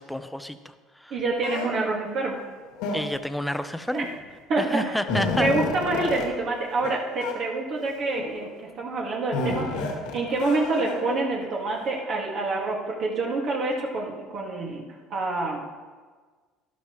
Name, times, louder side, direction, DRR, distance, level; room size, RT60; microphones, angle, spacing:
voice 1, 0.0-1.1 2.9-4.1 4.6-5.5, equal, 5° left, 9 dB, 0.7 m, -30 dB
voice 2, 1.1-2.4 3.9-4.1 4.5-5.0 5.4-9.8 10.1-14.8 15.1-15.6, right 2 dB, 55° right, -2 dB, 2.0 m, -27 dB
sound 1, 1.4-1.7 2.8-3.3 4.3-4.4 4.7-6.3 6.8-6.9 7.2-7.3 8.0-8.5 9.3-11.2, left 3 dB, 85° left, 2.1 m, -30 dB
12.0 x 12.0 x 3.1 m, 1.4 s
supercardioid pair, 100°, 0 cm